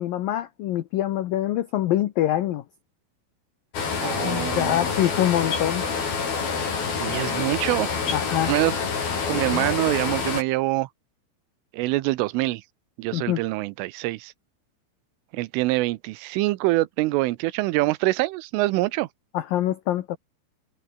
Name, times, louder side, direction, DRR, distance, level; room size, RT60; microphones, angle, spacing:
voice 1, 0.0-2.6 4.0-5.8 8.1-8.5 9.5-9.6 13.1-13.4 19.3-20.2, left 13 dB, 80° left, 2.0 m, -25 dB
sound 1, 3.7-10.4, left 5 dB, 50° left, 7.1 m, -27 dB
voice 2, 4.0-4.8 7.0-7.9 8.5-8.7 9.3-10.9 11.7-12.6 13.0-14.3 15.3-19.1, right 19 dB, 85° right, 3.4 m, -25 dB
omnidirectional pair, 5.7 m